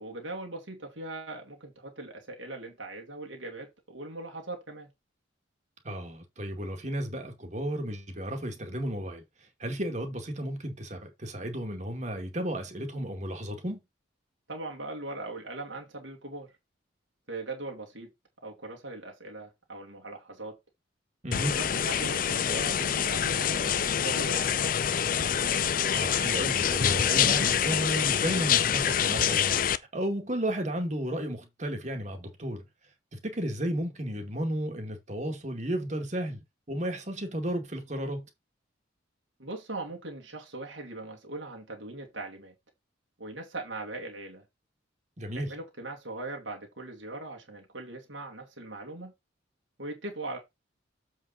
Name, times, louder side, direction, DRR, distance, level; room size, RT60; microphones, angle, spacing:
voice 1, 0.0-4.9 14.5-16.5 17.3-18.1 18.4-20.6 21.5-24.7 39.4-42.5 43.2-44.4 45.3-49.1 49.8-50.4, right 2 dB, 70° right, 2.6 m, -40 dB
voice 2, 5.8-9.2 9.6-13.8 21.2-21.6 25.9-32.6 33.1-36.4 36.7-38.3 45.2-45.5, right 1 dB, 35° right, 2.2 m, -33 dB
sound 1, 21.3-29.8, left 8 dB, 45° left, 0.5 m, -26 dB
7.6 x 5.2 x 4.2 m
head